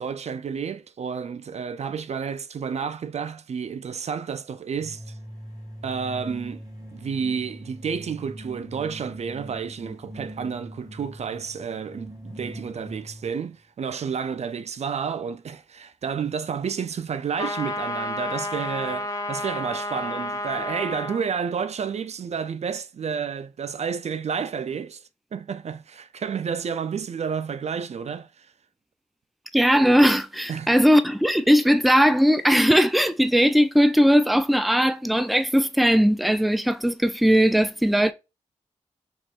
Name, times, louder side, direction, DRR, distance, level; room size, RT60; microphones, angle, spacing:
voice 1, 0.0-5.2 5.8-6.6 6.9-25.0 25.3-28.5 30.5-30.7, right 6 dB, 65° right, 0.4 m, -30 dB
sound 1, 4.8-13.4, equal, 30° right, 1.9 m, -41 dB
sound 2, 17.4-21.2, left 1 dB, 25° left, 1.6 m, -31 dB
voice 2, 29.5-38.1, equal, ahead, 0.5 m, -19 dB
4.4 x 3.1 x 2.4 m
cardioid pair, 55°, 12 cm